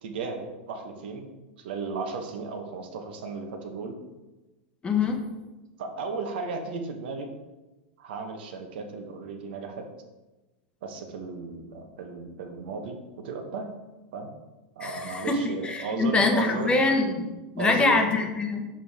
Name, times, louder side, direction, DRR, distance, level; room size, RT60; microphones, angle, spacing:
voice 1, 0.0-1.3 1.6-4.0 5.8-7.3 8.0-9.9 10.8-13.7 14.1-14.3 14.8-16.7 17.6-17.9, right 4 dB, 75° right, 4 dB, 1.1 m, -35 dB
voice 2, 4.8-5.2 14.8-15.4 15.6-18.7, left 3 dB, 20° left, 4 dB, 0.9 m, -24 dB
7.2 x 4.5 x 3.5 m, 1.1 s
supercardioid pair, 125°, 6 cm